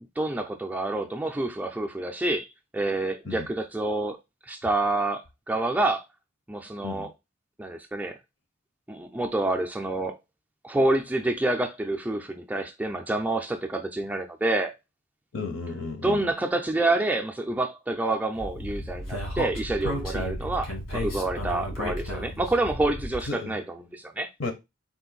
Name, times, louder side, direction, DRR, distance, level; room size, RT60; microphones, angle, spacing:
voice 1, 0.2-2.5 2.7-4.2 4.5-6.0 6.5-7.1 7.6-8.2 8.9-10.2 10.6-14.7 16.0-24.3, right 2 dB, 10° right, 0.3 m, -28 dB
voice 2, 15.3-16.3 23.3-23.6 24.4-24.5, left 3 dB, 60° left, 0.7 m, -33 dB
Speech, 18.4-23.3, equal, 90° left, 1.8 m, -33 dB
3.9 x 2.5 x 3.9 m
head